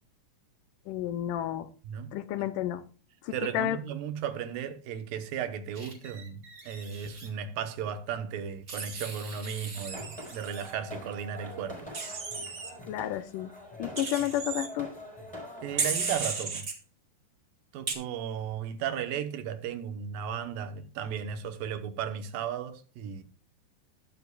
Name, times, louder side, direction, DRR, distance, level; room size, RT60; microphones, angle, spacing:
voice 1, 0.9-1.7 2.1-2.8 3.2-3.8 12.9-13.5 13.8-14.9, left 12 dB, 80° left, 2.1 m, -31 dB
voice 2, 3.3-11.9 15.6-16.7 17.7-23.2, right 8 dB, 85° right, 2.8 m, -35 dB
Wild animals, 5.7-7.3 8.7-10.7 11.9-12.7 14.0-14.7 15.8-16.7 17.9-18.0, right 4 dB, 30° right, 1.7 m, -35 dB
sound 1, 9.7-16.2, left 1 dB, ahead, 4.5 m, -44 dB
20.0 x 7.1 x 2.3 m
omnidirectional pair, 4.0 m